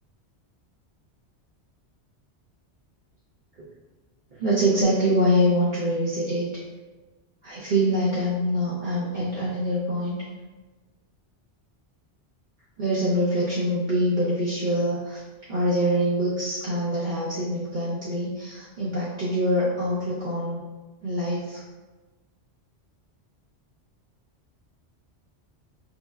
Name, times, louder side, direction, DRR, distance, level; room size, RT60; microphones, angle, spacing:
voice 1, 4.4-6.6 7.4-10.2 12.8-15.2 15.5-20.6 21.0-21.6, equal, 50° right, -7 dB, 0.7 m, -24 dB
5.4 x 2.1 x 2.3 m, 1.2 s
omnidirectional pair, 1.2 m